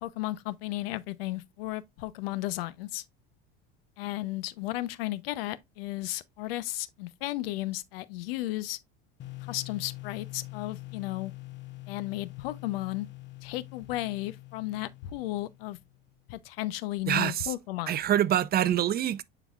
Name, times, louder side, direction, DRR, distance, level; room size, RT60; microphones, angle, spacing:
voice 1, 0.0-3.0 4.0-8.8 9.4-11.3 11.9-13.1 13.4-15.8 16.3-18.0, left 17 dB, 75° left, 0.8 m, -34 dB
sound 1, 9.2-16.0, left 21 dB, 40° left, 0.8 m, -44 dB
voice 2, 17.1-17.5 17.9-19.2, right 11 dB, 35° right, 0.5 m, -25 dB
9.8 x 4.0 x 2.4 m
supercardioid pair, 95°, 29 cm